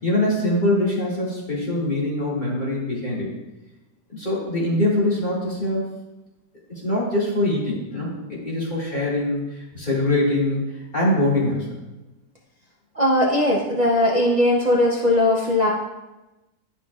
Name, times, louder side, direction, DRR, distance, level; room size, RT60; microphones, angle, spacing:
voice 1, 0.0-3.3 4.1-5.8 6.7-11.7, left 1 dB, 30° left, -6 dB, 2.2 m, -23 dB
voice 2, 12.9-15.7, left 1 dB, 60° right, -4 dB, 0.4 m, -19 dB
11.0 x 5.7 x 2.3 m, 1.0 s
omnidirectional pair, 1.8 m